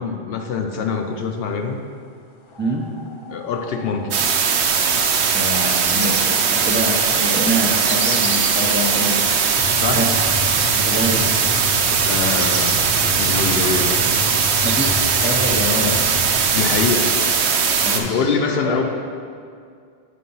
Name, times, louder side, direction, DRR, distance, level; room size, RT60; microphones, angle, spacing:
voice 1, 0.0-1.8 3.3-4.2 5.6-5.7 9.8-10.1 11.9-14.0 16.5-17.2 17.9-18.8, left 5 dB, 70° left, 4 dB, 0.8 m, -24 dB
sound 1, 2.5-16.9, left 4 dB, 55° left, 0.3 m, -33 dB
sound 2, 4.1-18.0, right 6 dB, 90° right, 0.9 m, -19 dB
voice 2, 5.3-9.7 9.9-10.1 10.7-11.6 14.6-16.1 17.8-18.8, equal, 15° right, -2 dB, 0.5 m, -26 dB
Bird vocalization bird call bird song, 5.8-6.2 7.0-8.5 12.0-12.7 13.4-14.9, right 4 dB, 65° right, 0.9 m, -31 dB
8.4 x 3.4 x 5.4 m, 2.2 s
omnidirectional pair, 1.1 m